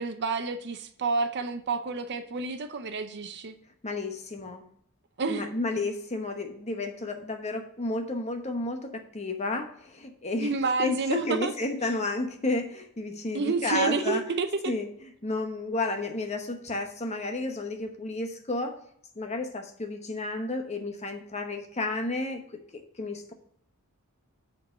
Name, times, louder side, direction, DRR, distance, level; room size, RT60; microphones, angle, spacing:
voice 1, 0.0-3.5 5.2-5.5 10.4-11.5 13.3-14.5, right 4 dB, 50° right, 9 dB, 0.6 m, -29 dB
voice 2, 3.8-4.6 5.3-10.5 10.8-14.2 14.7-18.8 19.2-22.4 22.7-23.3, left 2 dB, 30° left, 5 dB, 1.0 m, -32 dB
6.3 x 4.7 x 6.7 m, 0.66 s
head